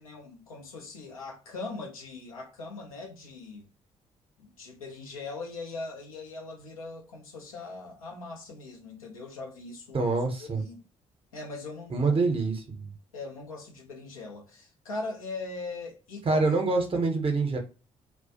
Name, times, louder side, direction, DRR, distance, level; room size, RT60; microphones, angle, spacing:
voice 1, 0.0-3.6 4.4-10.1 10.4-10.8 11.3-12.2 13.1-16.6, left 3 dB, 85° left, 0.5 m, -40 dB
voice 2, 9.9-10.6 11.9-12.9 16.2-17.6, right 3 dB, 30° right, 0.7 m, -26 dB
2.3 x 2.0 x 2.6 m
figure-of-eight pair, 40°, 17 cm